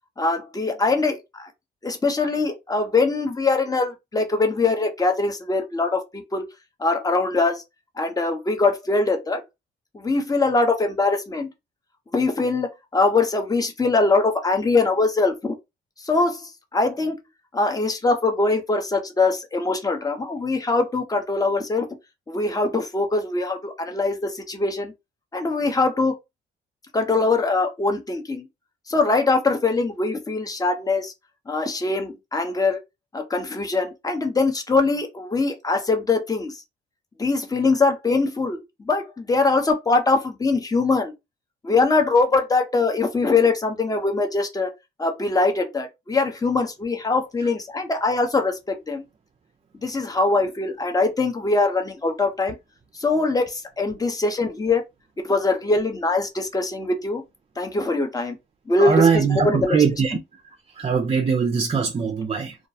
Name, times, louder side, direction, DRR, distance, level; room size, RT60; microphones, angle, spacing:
voice 1, 0.2-1.5 1.8-6.5 6.8-7.6 8.0-9.4 9.9-11.5 12.1-15.5 16.0-17.2 17.5-21.9 22.3-24.9 25.3-26.1 26.9-28.5 28.9-31.1 31.5-32.8 33.1-36.5 37.2-41.1 41.6-44.7 45.0-49.0 49.8-52.6 53.0-54.8 55.2-57.2 57.6-58.4 58.7-58.9 59.3-59.8, left 3 dB, 20° left, 0.7 m, -22 dB
voice 2, 58.8-60.2 60.7-62.6, right 6 dB, 30° right, 0.4 m, -21 dB
2.3 x 2.1 x 2.7 m
cardioid pair, 90°, 20 cm